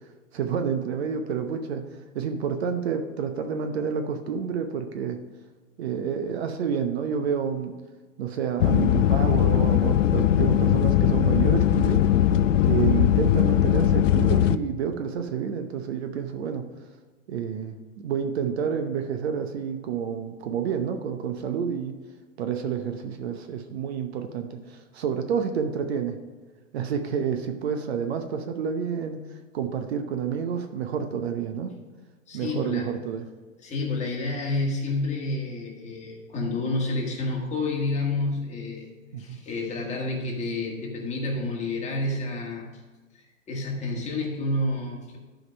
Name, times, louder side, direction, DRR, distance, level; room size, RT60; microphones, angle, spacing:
voice 1, 0.3-1.8 2.1-5.2 5.8-7.7 8.2-12.0 12.6-16.6 17.3-21.9 22.4-26.2 26.7-29.2 29.5-31.7 32.3-33.3 39.1-39.4, right 7 dB, 50° right, 6 dB, 0.9 m, -29 dB
sound 1, 8.6-14.6, left 11 dB, 70° left, 0.5 m, -20 dB
voice 2, 32.3-32.9 33.6-38.9 39.2-42.7 43.5-45.2, left 2 dB, 15° left, -2 dB, 1.9 m, -29 dB
11.0 x 5.1 x 5.1 m, 1.3 s
hypercardioid pair, 120°, 39 cm